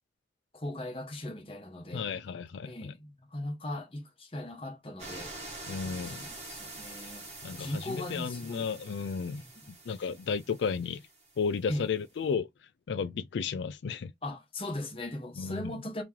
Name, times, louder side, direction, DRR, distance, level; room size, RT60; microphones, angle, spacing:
voice 1, 0.5-2.1 2.6-5.3 5.8-7.3 7.6-8.7 9.3-9.7 11.7-11.9 14.2-16.0, left 1 dB, 30° left, 1.1 m, -39 dB
voice 2, 1.9-2.9 5.7-6.2 7.4-9.4 9.9-11.0 11.4-14.1 15.4-15.7, left 6 dB, 80° left, 0.4 m, -33 dB
sound 1, 5.0-11.6 11.8-11.9, right 2 dB, 40° right, 1.2 m, -46 dB
3.0 x 2.9 x 3.6 m
head